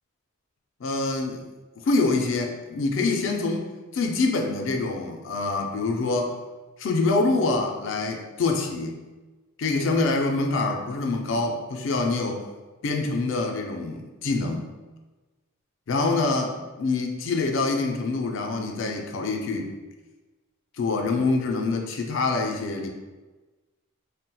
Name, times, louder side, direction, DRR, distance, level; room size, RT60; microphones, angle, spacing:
voice 1, 0.8-1.5 1.8-6.3 6.8-9.0 9.6-12.4 12.8-14.7 15.9-19.7 20.8-22.9, left 3 dB, 60° left, 3 dB, 0.4 m, -25 dB
3.9 x 2.1 x 2.2 m, 1.2 s
head